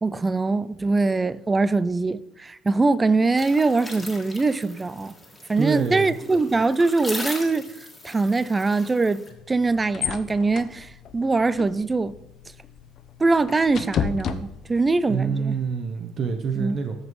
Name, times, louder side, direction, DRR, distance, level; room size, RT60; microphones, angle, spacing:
voice 1, 0.0-5.2 5.5-7.7 8.0-9.2 9.5-12.2 13.2-15.5 16.6-16.8, right 3 dB, 20° right, 0.4 m, -22 dB
sound 1, 3.4-9.3, left 2 dB, 10° left, 2.0 m, -39 dB
voice 2, 5.6-6.2 15.1-17.0, right 5 dB, 45° right, 0.7 m, -26 dB
sound 2, 9.3-15.0, left 7 dB, 50° left, 0.6 m, -33 dB
14.0 x 5.2 x 3.1 m
supercardioid pair, 95°, 0 cm